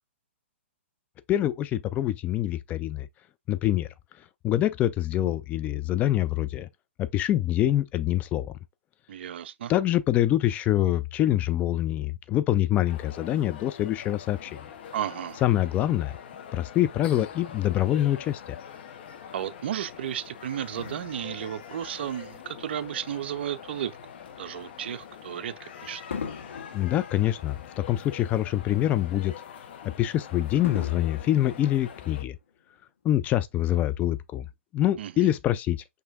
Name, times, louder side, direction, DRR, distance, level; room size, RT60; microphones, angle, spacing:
voice 1, 1.3-3.1 3.5-3.9 4.4-6.7 7.0-8.5 9.7-14.5 15.4-16.2 16.5-18.6 26.7-29.3 29.8-32.4 33.0-34.5 34.7-35.8, left 13 dB, 20° left, 0.3 m, -25 dB
voice 2, 9.1-9.7 14.9-15.4 19.3-23.9 24.4-26.0 35.0-35.3, right 10 dB, 55° right, 0.4 m, -33 dB
sound 1, 12.8-32.2, left 8 dB, 55° left, 0.9 m, -44 dB
Fireworks, 20.8-23.4 24.0-24.2 26.1-28.6 29.0-29.1 30.6-32.5 33.3-33.4, left 6 dB, 70° left, 1.0 m, -41 dB
6.0 x 2.7 x 2.4 m
figure-of-eight pair, 120°, 7 cm